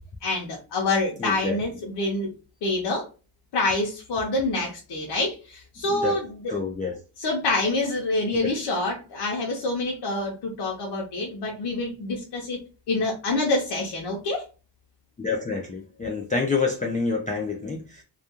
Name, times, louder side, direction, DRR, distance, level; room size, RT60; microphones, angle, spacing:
voice 1, 0.2-2.3 2.6-3.1 3.5-6.6 7.2-14.5, left 2 dB, 70° left, -1 dB, 0.7 m, -27 dB
voice 2, 1.2-1.6 5.9-6.2 6.5-7.0 8.4-8.5 15.2-18.0, left 4 dB, 20° left, 1 dB, 0.3 m, -28 dB
2.3 x 2.2 x 2.8 m, 0.33 s
cardioid pair, 95°, 42 cm